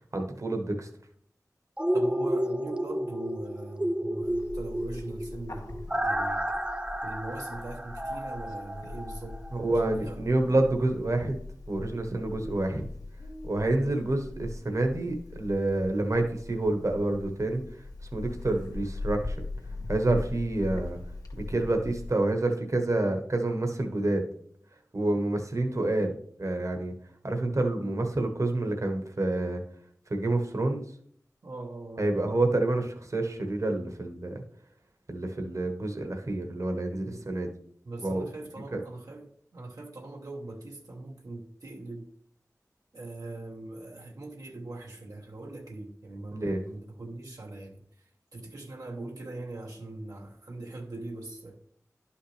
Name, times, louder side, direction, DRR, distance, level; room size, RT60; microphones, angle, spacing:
voice 1, 0.1-0.9 9.5-11.4 11.7-12.9 13.4-17.6 18.1-19.5 19.9-21.0 21.4-24.2 24.9-26.1 26.4-26.9 27.2-29.6 30.1-30.8 32.0-34.3 35.1-37.5 38.0-38.3 38.7-38.8 46.3-46.6, right 2 dB, 60° right, 1.2 m, -28 dB
sound 1, 1.8-9.7 10.0-10.1, right 1 dB, 20° right, 0.7 m, -31 dB
voice 2, 1.9-6.4 7.0-9.4 9.7-10.3 31.4-32.1 37.0-37.2 37.8-42.1 42.9-47.8 48.3-51.6, right 2 dB, 85° right, 1.0 m, -41 dB
Bird, 4.2-22.2, left 2 dB, 85° left, 1.3 m, -41 dB
11.0 x 5.6 x 3.4 m
wide cardioid pair, 50°, 6 cm